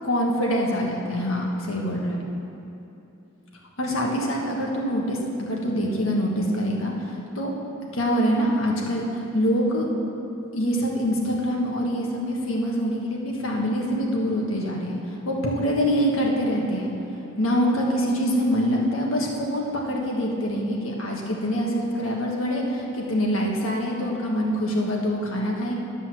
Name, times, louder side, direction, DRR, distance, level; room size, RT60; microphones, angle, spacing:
voice 1, 0.0-2.2 3.8-7.5 7.9-9.1 9.3-9.9 10.5-15.0 15.3-16.9 17.4-25.7, equal, 80° left, -2 dB, 1.7 m, -25 dB
11.0 x 5.5 x 7.6 m, 2.8 s
head